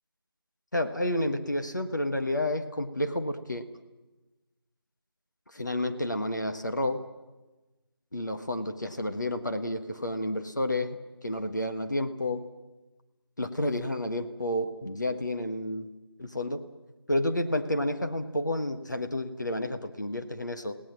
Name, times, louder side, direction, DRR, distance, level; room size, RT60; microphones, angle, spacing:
voice 1, 0.7-3.7 5.5-7.0 8.1-12.4 13.4-15.9 16.2-16.7 17.1-20.8, left 1 dB, 45° left, 7 dB, 1.5 m, -30 dB
29.5 x 18.0 x 7.5 m, 1.1 s
figure-of-eight pair, 170°, 13 cm